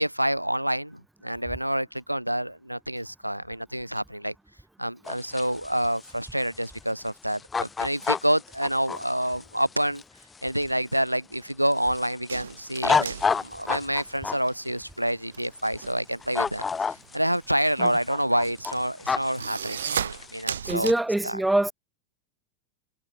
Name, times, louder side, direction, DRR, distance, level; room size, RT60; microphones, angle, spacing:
voice 1, 0.0-4.3 4.8-10.0 10.4-16.7 17.1-20.9 21.2-21.4, equal, 90° right, 5.6 m, -28 dB
sound 1, 5.1-11.1 11.5-14.4 15.4-15.9 16.2-17.4 17.7-20.4, left 5 dB, 15° left, 4.8 m, -29 dB
sound 2, 12.3-14.6 14.9-20.9, right 8 dB, 65° right, 6.5 m, -35 dB
voice 2, 20.7-21.7, right 1 dB, 5° right, 2.3 m, -24 dB
figure-of-eight pair, 90°, 0 cm